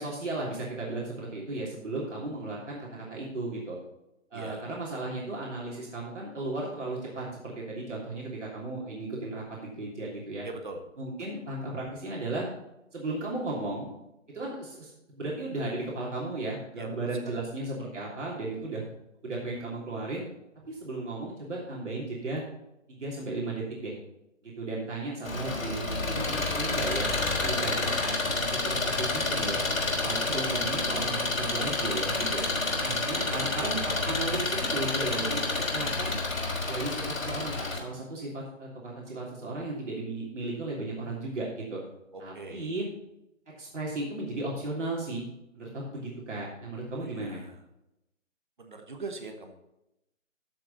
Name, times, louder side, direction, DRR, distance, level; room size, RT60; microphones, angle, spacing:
voice 1, 0.0-3.8 4.3-10.5 11.0-12.5 12.9-13.9 14.3-18.9 19.2-20.3 20.6-22.4 22.9-23.9 24.4-27.1 27.4-28.5 28.8-29.6 30.0-32.4 32.8-35.4 35.7-36.2 36.7-41.8 42.2-42.9 43.6-45.2 45.6-47.4, right 2 dB, 65° right, -4 dB, 3.1 m, -35 dB
voice 2, 4.3-4.7 10.4-10.8 16.8-17.0 17.2-17.4 32.7-32.8 33.2-33.6 42.1-42.7 46.9-47.6 48.6-49.5, right 3 dB, 40° right, 5 dB, 1.3 m, -41 dB
Engine, 25.2-37.8, left 3 dB, 90° left, 3.7 m, -29 dB
13.5 x 6.6 x 4.1 m, 0.90 s
hypercardioid pair, 175°, 39 cm